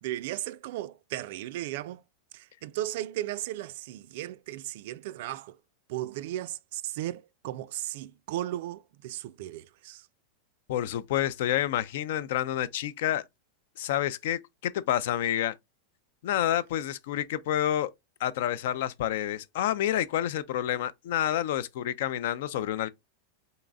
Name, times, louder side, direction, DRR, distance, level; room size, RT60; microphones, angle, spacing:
voice 1, 0.0-2.0 2.3-5.6 5.9-10.1, right 14 dB, 60° right, 0.3 m, -36 dB
voice 2, 10.7-13.2 13.8-15.6 16.2-17.9 18.2-22.9, left 11 dB, 65° left, 0.4 m, -29 dB
4.0 x 3.7 x 2.2 m
supercardioid pair, 155°, 0 cm